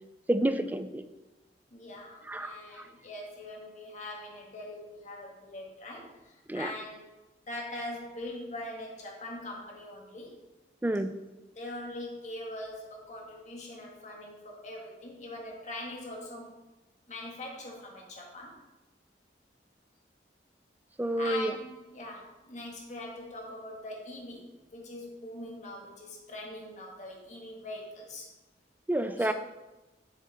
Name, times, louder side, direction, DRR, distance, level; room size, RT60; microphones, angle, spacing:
voice 1, 0.3-1.0 2.3-2.9 6.5-6.7 10.8-11.1 21.0-21.5 28.9-29.3, right 1 dB, 10° right, 10 dB, 0.3 m, -29 dB
voice 2, 1.7-7.1 7.5-10.4 11.5-16.5 17.1-18.6 21.1-28.3 29.2-29.3, left 1 dB, 40° left, -1 dB, 1.6 m, -42 dB
7.5 x 6.6 x 3.4 m, 1.1 s
head